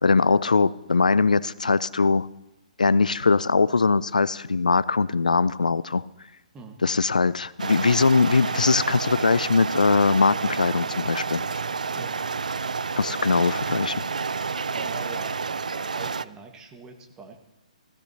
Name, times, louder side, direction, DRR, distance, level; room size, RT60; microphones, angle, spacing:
voice 1, 0.0-2.3 2.8-6.0 6.8-11.4 13.0-14.1, left 4 dB, 80° left, 18 dB, 0.3 m, -21 dB
sound 1, 7.6-16.2, right 5 dB, 75° right, 0.3 m, -29 dB
voice 2, 14.8-17.4, right 4 dB, 15° right, 4 dB, 1.4 m, -43 dB
16.0 x 15.5 x 2.8 m, 0.97 s
figure-of-eight pair, 130°, 4 cm